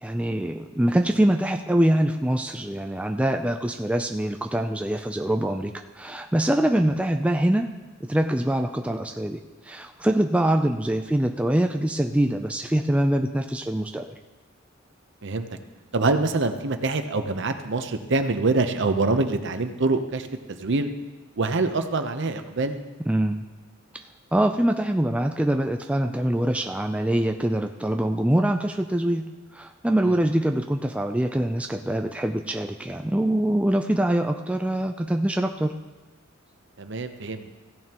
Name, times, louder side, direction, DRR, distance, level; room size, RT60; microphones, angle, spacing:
voice 1, 0.0-7.7 8.0-14.2 23.1-23.4 24.3-29.3 29.5-35.7, right 1 dB, 5° right, 4 dB, 0.3 m, -24 dB
voice 2, 15.9-20.9 21.4-22.8 30.1-30.2 36.8-37.5, right 3 dB, 60° right, 8 dB, 0.8 m, -25 dB
15.5 x 10.5 x 3.0 m, 1.2 s
head